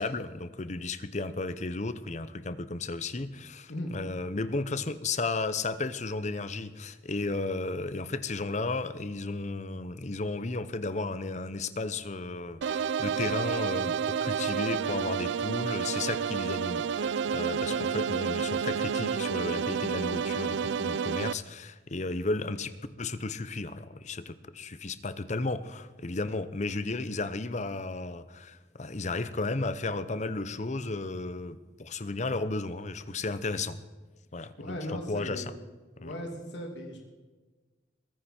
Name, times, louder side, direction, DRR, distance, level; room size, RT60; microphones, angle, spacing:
voice 1, 0.0-22.7 23.0-33.8 34.3-35.4 36.0-36.1, left 3 dB, 40° left, 14 dB, 0.8 m, -34 dB
sound 1, 12.6-21.3, right 6 dB, 80° right, 0.4 m, -30 dB
voice 2, 17.7-18.0 34.6-35.5 36.0-37.0, left 1 dB, 80° left, 1 dB, 2.6 m, -38 dB
22.0 x 10.0 x 4.4 m, 1.3 s
head